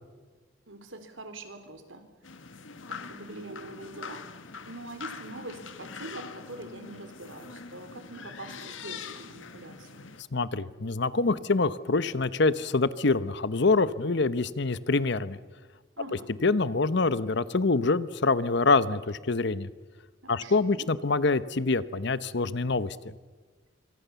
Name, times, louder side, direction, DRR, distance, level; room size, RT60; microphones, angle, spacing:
voice 1, 0.7-2.1 2.9-4.3 4.7-10.0 16.0-16.3 20.2-20.9, right 2 dB, 85° right, 8 dB, 3.6 m, -44 dB
sound 1, 2.2-10.2, left 5 dB, 85° left, 1.7 m, -43 dB
voice 2, 10.3-15.4 16.4-19.7 20.3-23.1, left 3 dB, 65° left, 15 dB, 1.0 m, -25 dB
26.5 x 25.0 x 7.0 m, 1.4 s
head